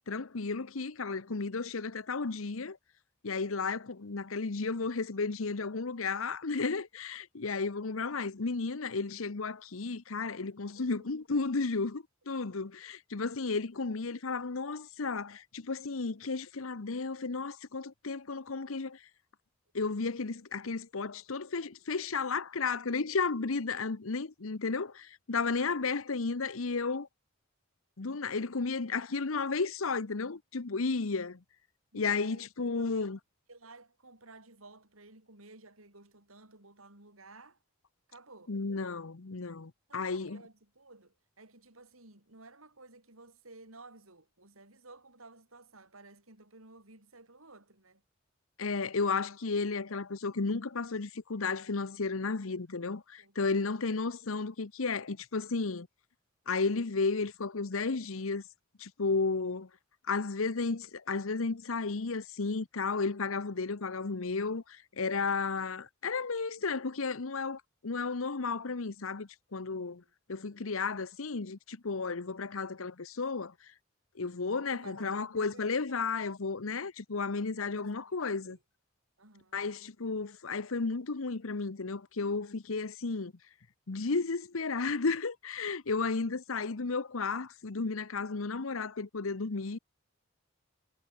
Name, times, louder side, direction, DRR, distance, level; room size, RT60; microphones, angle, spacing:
voice 1, 0.1-2.8 3.2-19.0 19.7-27.1 28.0-31.4 31.9-33.2 38.5-40.4 48.6-55.9 56.5-58.4 58.8-59.7 60.1-70.0 70.3-73.7 74.1-78.6 79.5-83.3 83.9-89.8, left 4 dB, 80° left, 0.9 m, -33 dB
voice 2, 10.6-11.0 24.8-24.9 29.3-29.4 31.9-33.1 33.5-37.6 38.1-38.5 39.9-48.0 53.2-53.8 69.7-70.1 74.7-76.2 77.6-78.1 78.4-78.6 79.2-79.6, right 2 dB, 85° right, 7.4 m, -55 dB
head